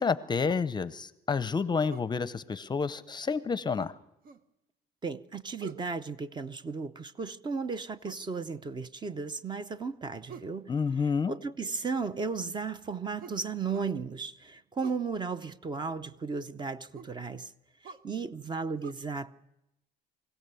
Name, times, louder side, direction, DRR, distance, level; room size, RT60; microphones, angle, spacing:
voice 1, 0.0-3.9 10.7-11.3, left 5 dB, 25° left, 0.6 m, -29 dB
sound 1, 1.9-2.2 3.8-4.5 5.6-5.9 8.0-8.3 10.3-10.6 13.2-13.9 14.8-15.1 16.9-17.2 17.8-18.1 18.8-18.9, right 7 dB, 60° right, 0.9 m, -47 dB
voice 2, 5.0-10.7 11.3-17.5 17.8-19.4, right 4 dB, 25° right, 0.7 m, -35 dB
23.5 x 16.5 x 6.9 m
cardioid pair, 110°, 17 cm